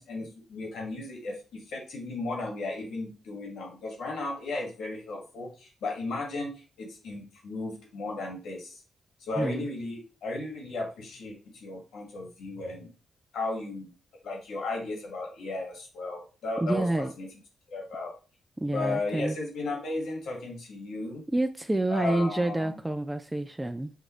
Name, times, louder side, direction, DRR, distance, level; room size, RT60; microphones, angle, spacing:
voice 1, 0.0-8.8 9.2-12.9 13.3-13.9 14.2-17.3 17.7-18.1 18.7-21.2 21.9-22.8, left 2 dB, 85° left, 0 dB, 1.6 m, -35 dB
voice 2, 9.4-9.7 16.6-17.1 18.6-19.4 21.3-23.9, right 1 dB, 15° right, 7 dB, 0.3 m, -28 dB
6.6 x 2.6 x 3.0 m, 0.35 s
cardioid pair, 75°, 0 cm